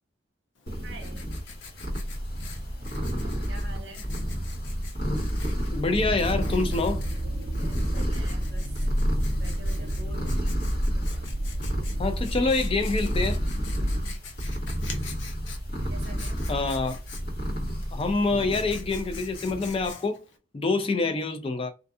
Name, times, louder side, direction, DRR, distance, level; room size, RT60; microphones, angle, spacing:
Writing, 0.6-20.4, left 5 dB, 90° left, 0.7 m, -46 dB
sound 1, 0.7-19.9, equal, 55° left, 1.3 m, -32 dB
voice 1, 0.8-1.2 3.5-4.1 7.6-8.7 9.4-10.5 14.0-14.2 15.9-16.4, right 2 dB, 80° right, 0.9 m, -45 dB
voice 2, 5.7-7.0 12.0-13.4 16.5-17.0 17.9-20.2 20.5-21.7, left 3 dB, 30° left, 0.4 m, -26 dB
sound 2, 5.8-14.0, equal, 45° right, 0.5 m, -31 dB
2.6 x 2.5 x 2.3 m
head